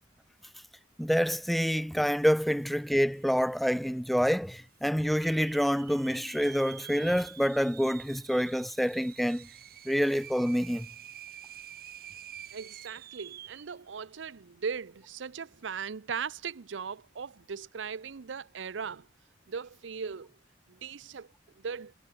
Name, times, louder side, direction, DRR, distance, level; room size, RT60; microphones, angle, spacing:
voice 1, 1.0-9.5 9.9-10.9, equal, ahead, 0.6 m, -27 dB
sound 1, 2.8-2.9 3.1-3.7 4.2-4.3 5.0-13.7, right 11 dB, 55° right, 3.6 m, -48 dB
voice 2, 12.5-19.1 19.5-20.3 20.7-21.3 21.6-21.9, right 6 dB, 90° right, 0.6 m, -38 dB
head